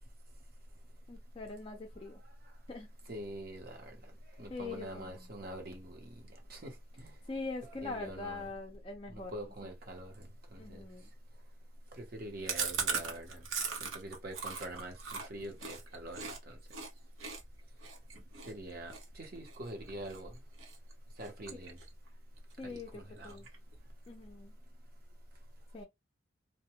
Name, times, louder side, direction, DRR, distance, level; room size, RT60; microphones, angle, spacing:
voice 1, 1.1-2.2 2.7-2.9 4.5-5.2 7.3-9.3 10.6-11.1 22.6-23.4 24.1-24.5 25.7-25.8, left 3 dB, 25° left, 0.4 m, -43 dB
voice 2, 3.1-4.0 4.4-6.2 6.5-7.1 7.6-8.5 9.1-10.3 10.5-10.8 12.0-13.4 13.8-16.6 18.5-20.3 21.2-21.8 22.6-23.4, right 1 dB, 50° right, 0.8 m, -44 dB
Chewing mastication, 12.5-16.4 16.7-16.9 17.2-20.2 20.6-20.9 21.2-22.1 22.4-22.5 22.8-22.9 23.2-23.7, right 5 dB, 85° right, 0.8 m, -38 dB
2.1 x 2.1 x 2.8 m
head